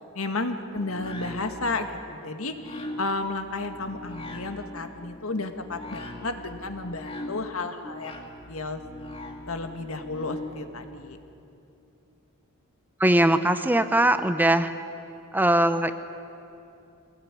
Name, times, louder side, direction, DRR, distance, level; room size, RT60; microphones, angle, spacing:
voice 1, 0.1-8.2 8.5-8.8 9.5-11.2, left 2 dB, 80° left, 7 dB, 1.8 m, -32 dB
sound 1, 0.7-10.7, left 1 dB, 25° left, 2.4 m, -41 dB
voice 2, 13.0-14.7 15.3-15.9, right 1 dB, 10° right, 10 dB, 0.7 m, -21 dB
24.0 x 18.5 x 9.9 m, 2.7 s
head